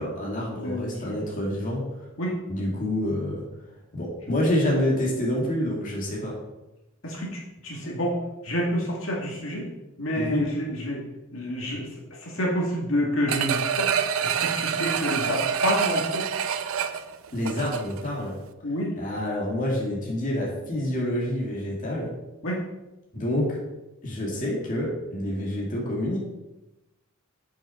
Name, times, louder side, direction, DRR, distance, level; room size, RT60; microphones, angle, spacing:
voice 1, 0.0-1.8 2.5-3.4 3.9-6.4 10.1-10.4 17.3-18.3 18.9-22.1 23.1-23.6 24.0-26.2, left 1 dB, 40° left, -3 dB, 2.1 m, -27 dB
voice 2, 0.6-1.1 2.2-2.3 7.0-8.1 8.4-9.7 10.0-11.0 11.3-11.9 12.2-13.9 14.2-16.2 18.6-18.9 22.4-22.6, equal, 70° left, -3 dB, 2.2 m, -28 dB
sound 1, 13.3-18.1 18.5-18.6, right 7 dB, 75° right, 0.6 m, -27 dB
7.4 x 6.1 x 5.7 m, 0.99 s
head